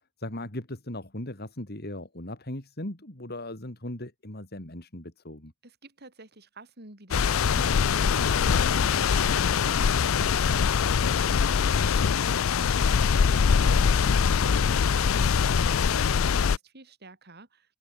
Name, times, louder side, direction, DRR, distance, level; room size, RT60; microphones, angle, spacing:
voice 1, 0.2-5.5 13.6-13.9, left 1 dB, 50° left, 3.8 m, -38 dB
voice 2, 5.6-17.8, right 2 dB, 50° right, 5.8 m, -49 dB
sound 1, 7.1-16.6, left 6 dB, 85° left, 0.5 m, -23 dB
open air
head